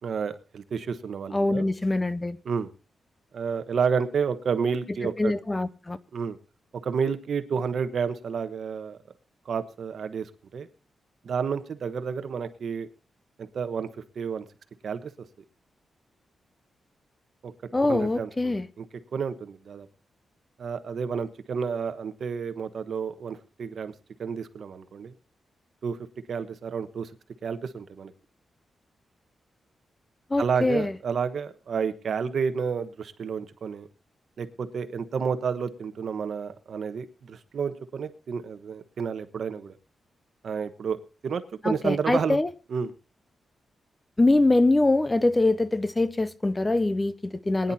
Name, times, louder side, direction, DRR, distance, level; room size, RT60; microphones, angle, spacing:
voice 1, 0.0-1.7 2.4-2.7 3.3-5.3 6.1-6.4 6.8-9.0 9.4-10.7 11.2-12.9 13.4-14.5 14.8-15.1 17.4-17.5 17.8-18.8 19.1-19.9 20.6-23.9 24.2-25.1 25.8-26.0 26.3-27.1 27.4-28.1 30.4-33.9 34.4-39.8 40.4-42.4 42.7-42.9 47.6-47.7, right 6 dB, 60° right, 1.2 m, -30 dB
voice 2, 1.3-2.4 5.2-6.0 17.7-18.7 30.3-30.9 41.6-42.5 44.2-47.7, left 2 dB, 15° left, 0.5 m, -23 dB
22.0 x 10.5 x 2.8 m
wide cardioid pair, 150°, 0 cm